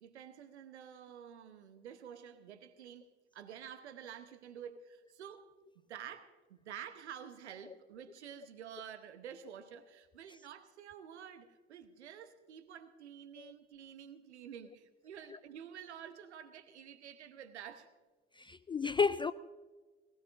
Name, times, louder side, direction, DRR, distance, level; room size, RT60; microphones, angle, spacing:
voice 1, 0.0-5.5 5.9-17.9, right 9 dB, 80° right, 1.0 m, -50 dB
voice 2, 18.4-19.3, left 5 dB, 15° left, 0.3 m, -32 dB
20.0 x 17.5 x 2.6 m
figure-of-eight pair, 55°, 34 cm